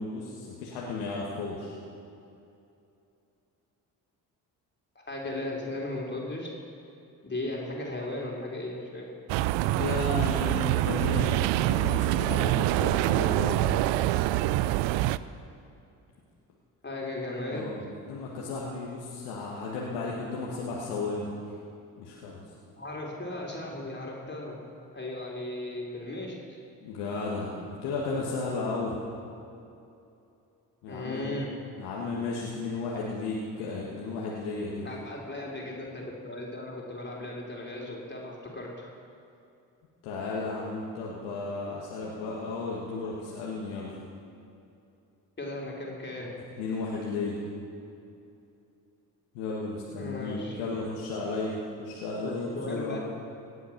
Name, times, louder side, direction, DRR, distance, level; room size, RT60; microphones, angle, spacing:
voice 1, 0.0-1.8 9.8-13.7 17.5-21.3 22.0-22.4 26.8-29.0 30.8-31.3 31.8-34.9 40.0-44.0 46.6-47.4 49.3-53.0, left 3 dB, 80° left, -4 dB, 1.7 m, -34 dB
voice 2, 4.9-6.6 7.2-9.1 16.8-17.7 22.8-24.6 24.9-26.6 30.9-31.5 34.8-38.9 45.4-46.4 50.0-50.6 52.2-53.0, left 1 dB, 25° left, -2 dB, 3.3 m, -36 dB
sound 1, 9.3-15.2, right 15 dB, 70° right, 0.5 m, -25 dB
18.0 x 8.3 x 5.9 m, 2.7 s
hypercardioid pair, 50°, 47 cm